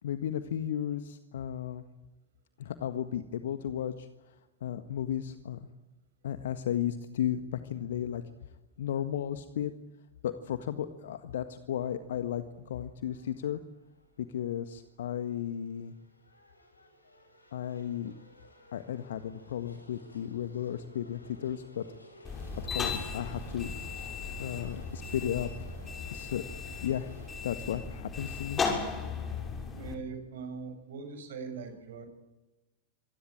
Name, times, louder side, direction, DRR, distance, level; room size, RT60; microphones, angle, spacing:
voice 1, 0.0-1.8 2.6-4.3 4.6-5.7 6.2-8.2 8.8-9.7 10.2-13.6 14.2-15.9 17.5-18.1 18.7-21.8 22.6-23.7 24.4-25.7 26.1-26.4 26.8-27.1 27.4-28.6, left 10 dB, 60° left, 10 dB, 1.6 m, -34 dB
sound 1, 11.4-27.3, left 1 dB, 80° left, 7.5 m, -56 dB
sound 2, 22.2-29.9, left 5 dB, 20° left, 6.6 m, -36 dB
voice 2, 29.7-32.1, right 5 dB, 60° right, 7 dB, 6.7 m, -41 dB
26.5 x 19.0 x 8.9 m, 1.0 s
figure-of-eight pair, 90°, 0 cm